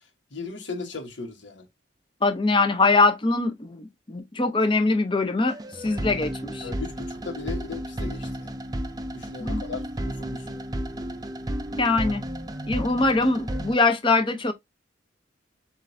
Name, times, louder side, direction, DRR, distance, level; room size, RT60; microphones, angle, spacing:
voice 1, 0.3-1.6 6.6-8.5 9.1-10.6, left 4 dB, 75° left, 1.2 m, -37 dB
voice 2, 2.2-5.6 5.8-6.7 9.4-9.6 11.8-12.2 12.7-14.5, left 3 dB, 25° left, 0.6 m, -22 dB
sound 1, 5.5-13.7, equal, 20° right, 0.5 m, -32 dB
7.3 x 2.5 x 2.6 m
head